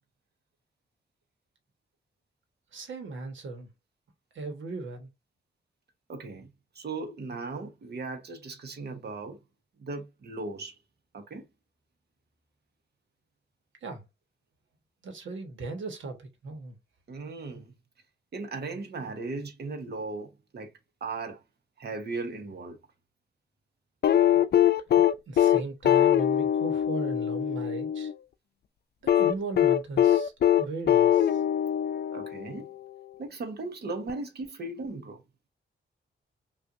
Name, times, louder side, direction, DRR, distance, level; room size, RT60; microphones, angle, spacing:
voice 1, 2.7-3.7 4.3-5.1 13.8-14.0 15.0-16.8 24.9-28.1 29.0-30.3 30.6-31.4, right 3 dB, 85° right, 1.3 m, -37 dB
voice 2, 6.1-6.5 6.7-9.4 9.8-10.8 11.1-11.4 17.1-17.7 18.3-20.7 21.0-21.4 21.8-22.8 32.1-32.7 33.2-35.2, right 3 dB, 60° right, 1.1 m, -37 dB
sound 1, 24.0-28.1 29.1-32.7 34.1-34.2, left 11 dB, 60° left, 0.4 m, -22 dB
5.7 x 2.5 x 2.6 m
wide cardioid pair, 125°, 19 cm